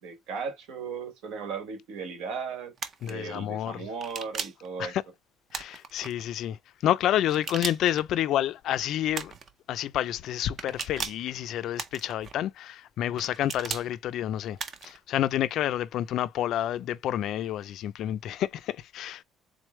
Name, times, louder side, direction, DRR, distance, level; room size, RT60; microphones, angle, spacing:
voice 1, 0.0-2.7 3.0-4.9, right 5 dB, 75° right, 1.5 m, -36 dB
sound 1, 2.8-3.1 4.0-4.7 5.5-6.1 7.3-8.0 9.1-9.5 10.6-11.3 11.8-12.3 13.2-13.9 14.6-15.0, right 6 dB, 35° right, 0.6 m, -36 dB
voice 2, 3.0-3.9 4.8-5.0 5.5-9.3 9.7-19.2, left 12 dB, 55° left, 0.4 m, -29 dB
3.8 x 3.2 x 3.1 m
cardioid pair, 160°, 0 cm